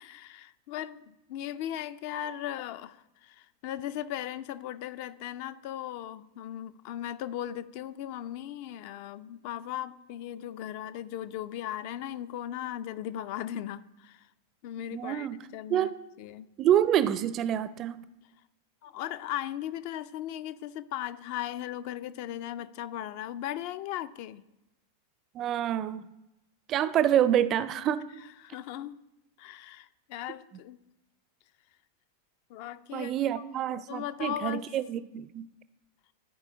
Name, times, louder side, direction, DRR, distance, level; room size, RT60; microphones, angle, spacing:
voice 1, 0.0-14.3 14.6-15.9 16.2-16.5 18.8-24.4 28.4-28.9 29.4-30.8 32.5-33.4 33.9-34.6, left 11 dB, 45° left, 14 dB, 0.4 m, -37 dB
voice 2, 14.9-15.4 15.7-16.0 16.6-18.0 25.3-26.1 26.7-28.0 32.9-35.5, right 10 dB, 30° right, 15 dB, 0.4 m, -27 dB
13.5 x 4.7 x 3.8 m, 0.91 s
figure-of-eight pair, 90°, 0 cm